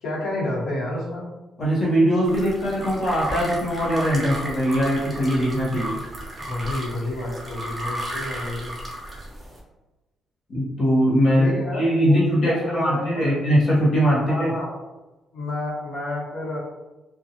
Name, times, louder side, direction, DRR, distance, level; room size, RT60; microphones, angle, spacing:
voice 1, 0.0-1.3 6.4-8.7 11.4-13.3 14.2-14.7 15.3-16.6, left 1 dB, 80° left, -6 dB, 1.0 m, -30 dB
voice 2, 1.6-6.0 10.5-14.5, equal, 40° left, -6 dB, 0.8 m, -21 dB
sound 1, 2.2-9.6, right 1 dB, 15° right, 0.5 m, -33 dB
2.6 x 2.2 x 2.7 m, 1.1 s
cardioid pair, 165°, 0 cm